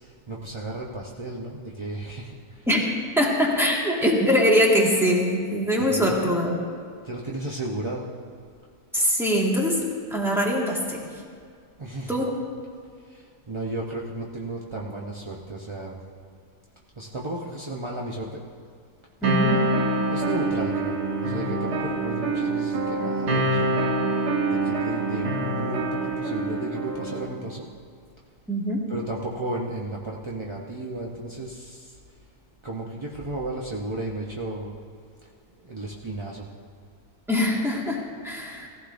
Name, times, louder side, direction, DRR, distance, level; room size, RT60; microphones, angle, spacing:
voice 1, 0.3-2.4 5.9-6.3 7.0-8.1 11.8-12.3 13.5-16.0 17.0-18.4 20.0-23.9 24.6-27.7 28.9-31.9 32.6-34.7 35.7-36.5, right 2 dB, 35° right, -3 dB, 0.4 m, -33 dB
voice 2, 3.1-6.6 8.9-9.8 10.1-11.0 12.1-12.3 19.2-19.6 28.5-28.8 37.3-38.7, equal, ahead, -3 dB, 1.6 m, -22 dB
sound 1, 19.2-27.3, right 2 dB, 80° right, 1.8 m, -26 dB
17.0 x 15.0 x 2.6 m, 2.1 s
omnidirectional pair, 1.7 m